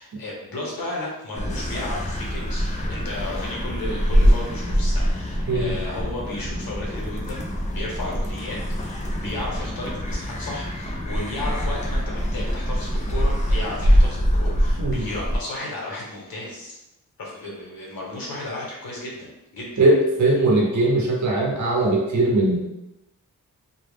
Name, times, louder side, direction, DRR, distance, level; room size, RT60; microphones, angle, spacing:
voice 1, 0.0-16.8 17.2-19.8 20.6-21.1 21.8-21.9, left 2 dB, 80° left, -3 dB, 0.9 m, -34 dB
sound 1, 1.3-15.4, equal, 20° left, 0.4 m, -24 dB
voice 2, 19.8-22.6, right 2 dB, 55° right, -2 dB, 0.7 m, -20 dB
2.3 x 2.0 x 3.2 m, 0.90 s
wide cardioid pair, 105°, 35 cm